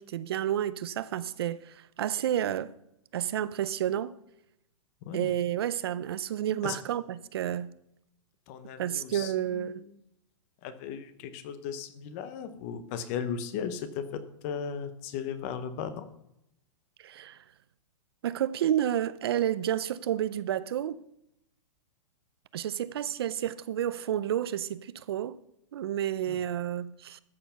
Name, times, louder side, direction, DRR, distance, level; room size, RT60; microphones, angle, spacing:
voice 1, 0.0-2.7 3.1-4.1 5.1-7.7 8.8-9.8 17.0-17.4 18.2-21.0 22.5-25.4 25.7-27.2, right 11 dB, 50° right, 0.5 m, -30 dB
voice 2, 8.5-9.3 10.6-16.1 26.3-26.4, left 7 dB, 25° left, 0.8 m, -36 dB
13.5 x 6.8 x 5.7 m
hypercardioid pair, 175°, 17 cm